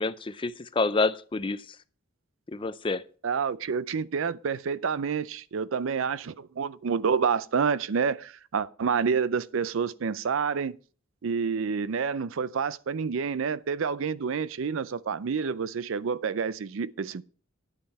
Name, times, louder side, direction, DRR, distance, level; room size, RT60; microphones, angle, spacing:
voice 1, 0.0-1.8 2.5-3.0, left 3 dB, 25° left, 0.4 m, -28 dB
voice 2, 3.2-10.8 11.2-17.2, right 6 dB, 70° right, 0.5 m, -28 dB
9.9 x 8.8 x 4.2 m
head